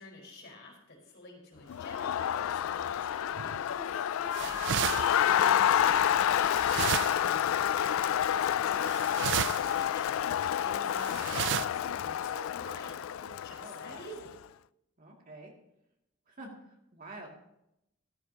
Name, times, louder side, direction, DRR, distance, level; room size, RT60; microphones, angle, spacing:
voice 1, 0.0-3.6 4.4-4.6 5.2-8.1 8.4-10.2 10.5-14.4, left 1 dB, 55° left, 0 dB, 4.7 m, -49 dB
Crowd, 1.7-14.2, left 10 dB, 75° left, 0.3 m, -29 dB
sound 1, 2.7-7.9, equal, 10° right, 2.1 m, -54 dB
sound 2, 3.4-3.7 4.3-5.8 6.4-7.5 7.8-7.9 8.8-9.8 10.0-10.1 11.0-11.7, right 11 dB, 55° right, 0.3 m, -33 dB
voice 2, 13.6-14.1 15.0-15.5 16.3-17.3, right 2 dB, 40° right, 0 dB, 2.4 m, -48 dB
14.5 x 13.5 x 2.9 m, 0.82 s
head